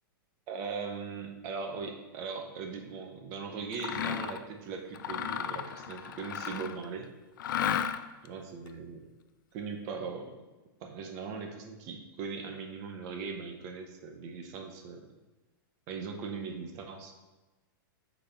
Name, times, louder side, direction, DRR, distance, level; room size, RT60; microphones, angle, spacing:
voice 1, 0.5-7.1 8.2-9.1 9.5-10.4 10.8-15.1 15.9-17.1, right 5 dB, 25° right, 4 dB, 0.7 m, -39 dB
Mechanisms, 3.7-4.4 4.9-6.8 7.4-8.3, left 9 dB, 60° left, 0.4 m, -34 dB
6.6 x 4.0 x 5.7 m, 1.1 s
supercardioid pair, 175°, 12 cm